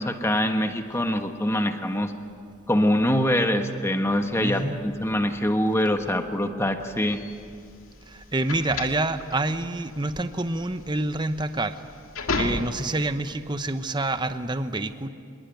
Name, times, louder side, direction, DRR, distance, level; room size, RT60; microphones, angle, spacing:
voice 1, 0.0-2.1 2.7-7.2, left 1 dB, 10° left, 6 dB, 1.3 m, -24 dB
voice 2, 4.4-4.8 8.1-11.8 12.3-15.1, right 2 dB, 20° right, 10 dB, 0.9 m, -27 dB
sound 1, 7.1-13.1, left 3 dB, 75° left, 2.0 m, -33 dB
25.5 x 22.0 x 9.2 m, 2.4 s
head